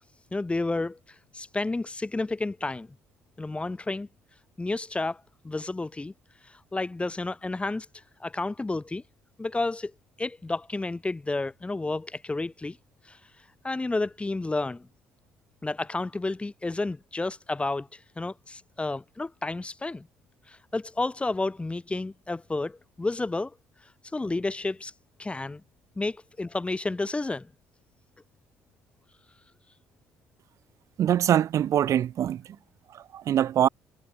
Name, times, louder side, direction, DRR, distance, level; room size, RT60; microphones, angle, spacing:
voice 1, 0.3-1.0 1.3-2.9 3.4-4.1 4.6-6.1 6.5-7.9 8.2-9.0 9.4-9.9 10.2-12.8 13.1-13.2 13.6-14.9 15.6-20.1 20.5-23.5 24.1-24.9 25.2-25.6 26.0-27.5, left 2 dB, 20° left, 4.5 m, -31 dB
voice 2, 31.0-32.6 32.9-33.7, right 10 dB, 60° right, 2.8 m, -24 dB
hypercardioid pair, 60°, 6 cm